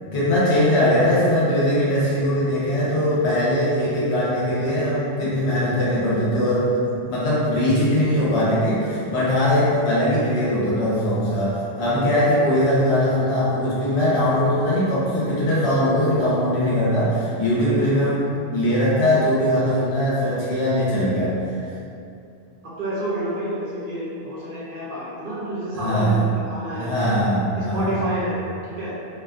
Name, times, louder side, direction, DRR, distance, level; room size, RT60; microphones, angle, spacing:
voice 1, 0.0-21.4 21.6-21.7 25.7-26.2 26.7-28.0, equal, 80° left, -8 dB, 1.1 m, -21 dB
voice 2, 17.6-18.2 22.6-26.2 26.4-27.2 27.6-28.9, right 1 dB, 60° right, -7 dB, 0.7 m, -29 dB
2.5 x 2.2 x 2.4 m, 2.5 s
omnidirectional pair, 1.1 m